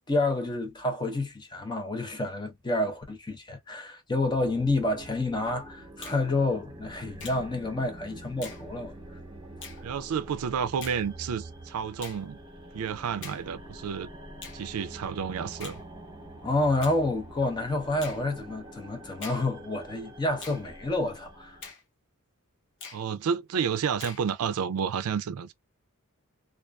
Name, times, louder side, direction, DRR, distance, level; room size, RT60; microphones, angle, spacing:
voice 1, 0.1-8.9 16.4-21.6, left 2 dB, 20° left, 0.7 m, -29 dB
sound 1, 4.3-21.7, right 1 dB, 25° right, 0.9 m, -46 dB
Finger snapping, 6.0-6.2 7.2-7.4 8.4-8.6 9.6-9.8 10.8-11.0 12.0-12.2 13.2-13.4 14.4-14.6 15.6-15.8 16.8-17.0 18.0-18.2 19.2-19.4 20.4-20.6 21.6-21.8 22.8-23.0 24.0-24.2, left 5 dB, 60° left, 0.7 m, -43 dB
voice 2, 9.8-12.4 12.7-14.1 14.5-15.8 22.9-25.5, right 7 dB, 75° right, 0.4 m, -30 dB
2.5 x 2.3 x 2.2 m
head